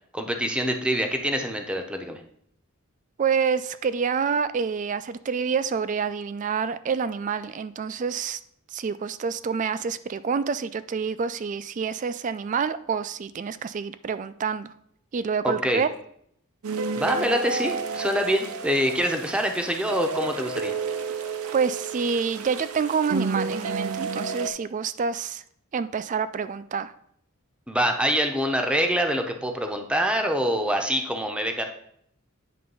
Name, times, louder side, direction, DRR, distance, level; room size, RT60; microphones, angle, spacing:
voice 1, 0.1-2.2 15.4-15.8 17.0-20.7 27.7-31.6, equal, 5° right, 4 dB, 0.7 m, -25 dB
voice 2, 3.2-8.4 8.7-14.7 15.1-15.9 21.5-25.4 25.7-26.9, right 6 dB, 35° right, 14 dB, 0.3 m, -27 dB
sound 1, 16.6-24.5, right 4 dB, 80° right, 0.6 m, -31 dB
9.5 x 3.3 x 5.3 m, 0.70 s
head